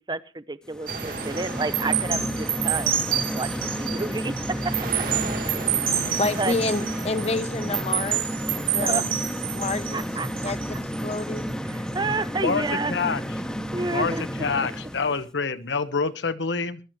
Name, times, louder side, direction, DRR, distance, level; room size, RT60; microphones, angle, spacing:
voice 1, 0.0-4.8 5.9-6.5 8.8-9.1 9.9-10.3 11.7-12.9 13.7-14.2, right 3 dB, 25° right, 0.6 m, -30 dB
sound 1, 0.7-15.2, equal, 5° left, 0.9 m, -32 dB
sound 2, 0.9-11.4 11.9-12.1, right 9 dB, 50° right, 1.8 m, -29 dB
voice 2, 5.9-9.0 9.5-10.1 10.4-11.5, left 3 dB, 35° left, 0.9 m, -29 dB
voice 3, 12.4-13.2 13.9-16.8, left 4 dB, 90° left, 1.0 m, -27 dB
21.0 x 11.5 x 3.1 m
head